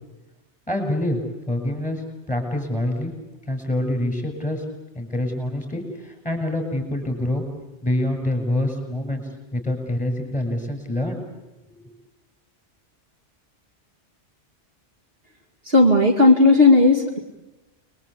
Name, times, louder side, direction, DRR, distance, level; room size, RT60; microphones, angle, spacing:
voice 1, 0.7-1.2 1.5-3.1 3.5-4.6 4.9-7.4 7.8-9.2 9.5-11.2 11.7-11.9, left 1 dB, 5° left, 4 dB, 7.5 m, -26 dB
voice 2, 15.6-17.2, left 3 dB, 55° right, 2 dB, 2.8 m, -14 dB
29.5 x 22.0 x 8.5 m, 1.0 s
omnidirectional pair, 1.2 m